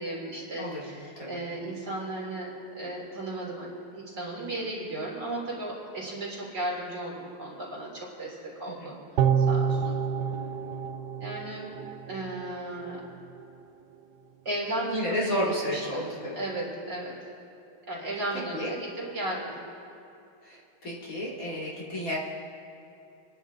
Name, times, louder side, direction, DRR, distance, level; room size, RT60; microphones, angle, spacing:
voice 1, 0.0-8.9 9.4-10.0 11.2-11.8 12.1-13.0 14.5-17.3 17.9-19.6, right 1 dB, 50° right, -5 dB, 4.1 m, -35 dB
voice 2, 8.7-9.0 14.9-16.3 18.5-18.7 20.4-22.2, equal, 40° left, -7 dB, 2.9 m, -32 dB
sound 1, 9.2-12.5 12.9-13.0, right 7 dB, 80° right, 0.9 m, -28 dB
28.5 x 11.0 x 3.8 m, 2.7 s
omnidirectional pair, 2.3 m